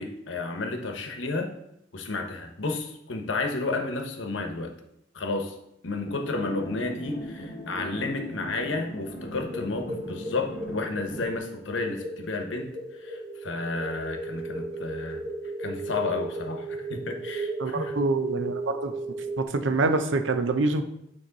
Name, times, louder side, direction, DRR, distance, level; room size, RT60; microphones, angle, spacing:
voice 1, 0.0-1.5 1.9-4.7 5.1-5.5 5.8-12.7 13.0-15.2 15.6-16.6 16.9-17.9, left 3 dB, 85° left, 4 dB, 1.0 m, -31 dB
sound 1, 6.1-11.4, left 1 dB, 55° left, 1.1 m, -39 dB
sound 2, 9.3-19.4, right 2 dB, 30° right, 0.7 m, -36 dB
voice 2, 17.6-18.5 18.8-18.9 19.5-20.8, right 3 dB, 80° right, 8 dB, 0.6 m, -25 dB
8.8 x 3.1 x 4.0 m, 0.78 s
head